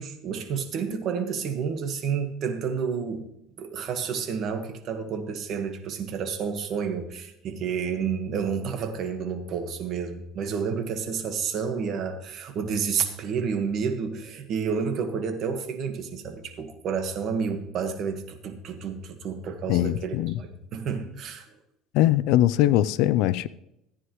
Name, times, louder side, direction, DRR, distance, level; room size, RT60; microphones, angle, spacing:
voice 1, 0.0-3.3 3.6-21.5, right 6 dB, 45° right, 7 dB, 1.5 m, -30 dB
voice 2, 19.7-20.4 21.9-23.5, left 14 dB, 70° left, 18 dB, 0.4 m, -21 dB
14.5 x 9.6 x 3.1 m, 0.82 s
cardioid pair, 135°, 0 cm